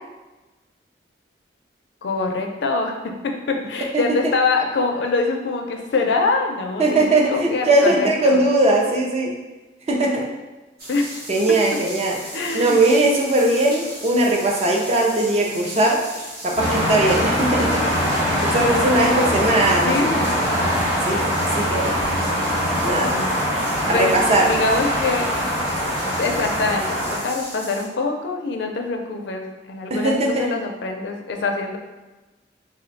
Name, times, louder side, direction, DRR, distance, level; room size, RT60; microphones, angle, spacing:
voice 1, 2.0-8.4 10.9-11.1 11.5-11.6 12.3-12.8 19.8-20.3 22.9-23.3 23.9-25.3 26.2-31.8, left 3 dB, 70° left, 3 dB, 0.4 m, -24 dB
voice 2, 3.9-4.3 6.8-9.3 9.9-10.2 11.3-12.2 12.5-16.0 16.4-17.7 18.4-20.0 21.1-21.3 21.6-22.0 22.8-23.1 23.9-24.5 29.9-30.6, right 2 dB, 35° right, 0 dB, 0.4 m, -19 dB
sound 1, 10.8-27.9, right 1 dB, 55° right, 0.9 m, -36 dB
sound 2, 16.6-27.2, equal, 10° right, 0.8 m, -22 dB
2.6 x 2.1 x 3.9 m, 1.2 s
head